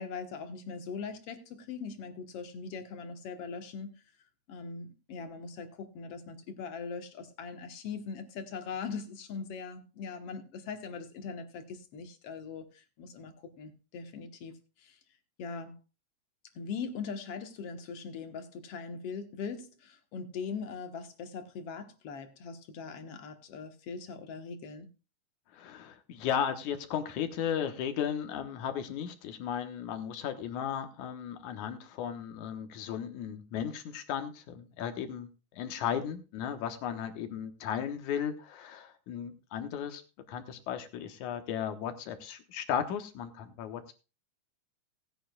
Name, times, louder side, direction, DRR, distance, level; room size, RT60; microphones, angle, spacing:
voice 1, 0.0-3.9 4.5-14.5 14.8-15.0 15.4-15.8 16.6-24.9, left 5 dB, 60° left, 7 dB, 2.0 m, -41 dB
voice 2, 25.5-40.0 40.3-43.9, left 8 dB, 85° left, 8 dB, 2.5 m, -35 dB
18.5 x 9.2 x 2.3 m, 0.31 s
omnidirectional pair, 3.4 m